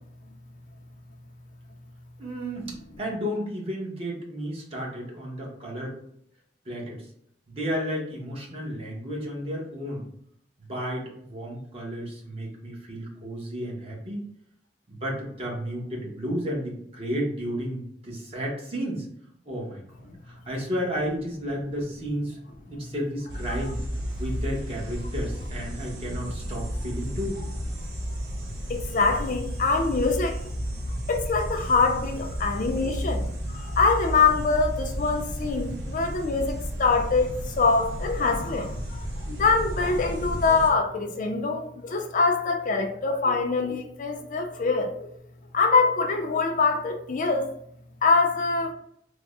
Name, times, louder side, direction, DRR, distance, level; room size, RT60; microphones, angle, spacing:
voice 1, 2.2-2.7 3.0-6.0 6.7-7.0 7.5-10.0 10.6-14.3 14.9-19.0 19.4-19.8 20.3-22.4 22.7-23.8 24.2-27.4, equal, 35° right, -3 dB, 0.9 m, -32 dB
sound 1, 23.3-40.7, equal, 85° right, 0.8 m, -33 dB
voice 2, 28.7-30.4 30.9-33.2 33.5-45.1 45.5-47.5 48.0-48.7, left 4 dB, 45° left, 4 dB, 0.4 m, -24 dB
3.5 x 2.0 x 3.5 m, 0.69 s
head